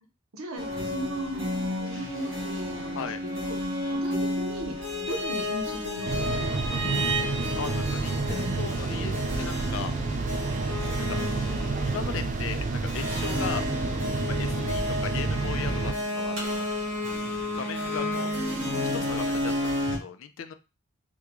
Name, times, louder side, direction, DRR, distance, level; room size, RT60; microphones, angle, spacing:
voice 1, 0.3-3.6 3.9-7.1, right 1 dB, 90° right, 4 dB, 0.8 m, -37 dB
sound 1, 0.5-20.0, left 1 dB, 60° right, 1.2 m, -31 dB
sound 2, 6.0-15.9, right 3 dB, 35° right, 0.3 m, -29 dB
voice 2, 7.6-9.9 11.0-11.2 11.9-13.6 14.3-16.6 17.5-18.3 19.0-20.5, left 6 dB, 70° left, 9 dB, 0.4 m, -37 dB
3.6 x 2.2 x 3.0 m, 0.29 s
head